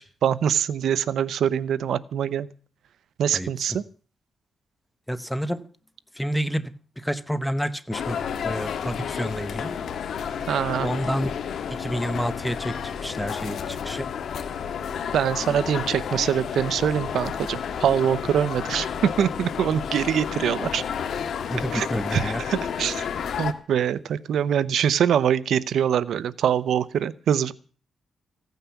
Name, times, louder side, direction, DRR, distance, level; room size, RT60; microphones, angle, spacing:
voice 1, 0.0-2.5 3.2-3.8 10.5-10.9 15.1-20.8 21.7-21.9 22.1-23.1 23.4-27.5, right 9 dB, 70° right, 0.7 m, -24 dB
voice 2, 3.3-3.8 5.1-5.6 6.1-9.7 10.8-11.3 11.7-14.1 21.5-22.4, equal, ahead, 1.0 m, -29 dB
sound 1, 7.9-23.5, left 7 dB, 65° left, 1.7 m, -31 dB
16.0 x 9.3 x 7.1 m
cardioid pair, 110°, 0 cm